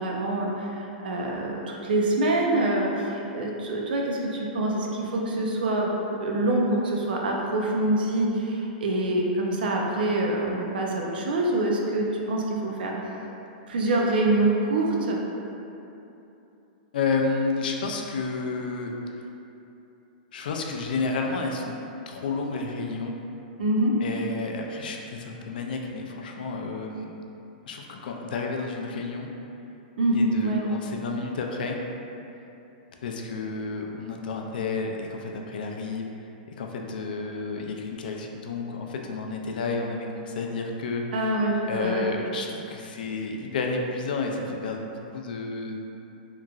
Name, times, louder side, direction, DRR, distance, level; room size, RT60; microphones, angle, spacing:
voice 1, 0.0-5.9 6.2-12.9 13.7-15.2 23.6-23.9 30.0-30.7 41.1-42.1, right 2 dB, 85° right, -1 dB, 0.5 m, -25 dB
voice 2, 16.9-18.9 20.3-21.8 22.1-23.2 24.0-27.1 27.7-29.3 30.1-31.8 33.0-36.1 36.6-41.0 41.7-45.8, left 4 dB, 70° left, 1 dB, 0.3 m, -31 dB
2.9 x 2.5 x 2.3 m, 2.9 s
supercardioid pair, 175°, 5 cm